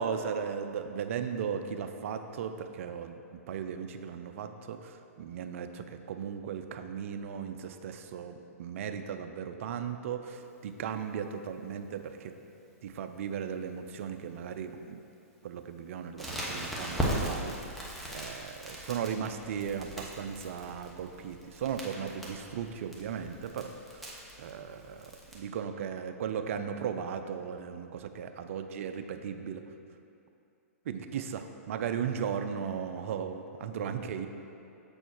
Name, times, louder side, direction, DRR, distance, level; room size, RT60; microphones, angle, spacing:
voice 1, 0.0-12.3 12.8-15.0 15.4-17.8 18.1-24.0 24.4-29.6 30.9-34.3, right 7 dB, 60° right, 7 dB, 0.5 m, -36 dB
Crackle, 16.2-25.3, equal, ahead, 1.1 m, -39 dB
7.2 x 4.4 x 4.5 m, 2.6 s
hypercardioid pair, 125°, 8 cm